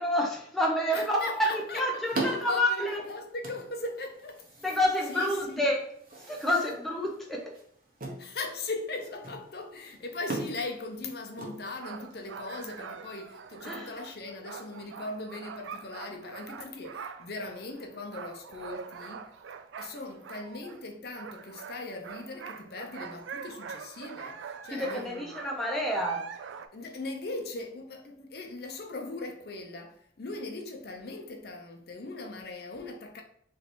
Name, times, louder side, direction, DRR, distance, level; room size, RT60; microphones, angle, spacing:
voice 1, 0.0-3.0 4.6-5.9 6.3-7.5 13.6-13.9 24.7-26.3, equal, ahead, 0.5 m, -28 dB
voice 2, 0.9-2.0 2.3-4.4 5.1-5.7 8.2-19.3 19.8-25.4 26.7-33.2, left 2 dB, 55° left, 0.6 m, -39 dB
sound 1, 1.1-12.2, right 2 dB, 45° right, 0.9 m, -41 dB
sound 2, 11.6-20.8 21.1-26.7, right 6 dB, 80° right, 0.3 m, -44 dB
3.2 x 2.8 x 4.2 m
head